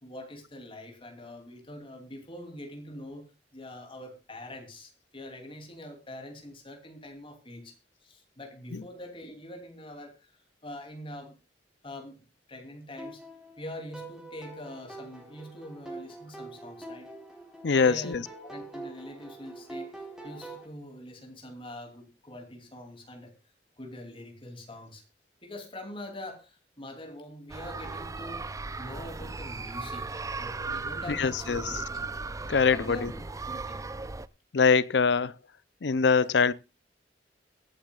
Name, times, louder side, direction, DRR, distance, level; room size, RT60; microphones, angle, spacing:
voice 1, 0.0-3.3 3.5-7.7 8.0-10.3 10.6-11.4 11.8-12.2 12.5-13.2 13.6-17.1 17.8-23.3 23.8-25.0 25.4-28.5 28.8-31.8 32.7-33.9, left 1 dB, 30° left, 3.1 m, -44 dB
sound 1, 13.0-20.7, right 2 dB, 5° right, 4.4 m, -44 dB
voice 2, 17.6-18.2 31.1-31.8 32.5-33.1 34.5-35.3 35.8-36.5, left 5 dB, 75° left, 0.6 m, -23 dB
sound 2, 27.5-34.3, right 3 dB, 20° right, 0.5 m, -37 dB
22.5 x 8.9 x 2.4 m
head